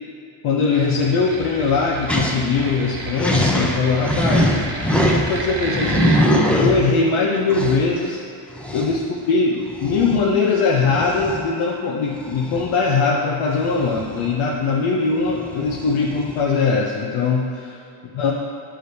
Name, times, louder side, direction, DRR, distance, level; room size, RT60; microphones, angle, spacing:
voice 1, 0.4-4.5 5.1-8.2 8.7-17.8 18.1-18.3, left 4 dB, 75° left, -2 dB, 0.7 m, -21 dB
sound 1, 0.6-6.3, right 2 dB, 55° right, 1.2 m, -31 dB
sound 2, 2.1-2.4 2.7-2.8 3.2-5.4 5.7-7.0 7.5-7.8 8.5-9.0 9.7-10.2 10.8-11.4 12.2-12.8 13.6-14.5 15.2-16.4, equal, ahead, 0.6 m, -22 dB
7.9 x 5.0 x 2.7 m, 2.5 s
cardioid pair, 80°, 48 cm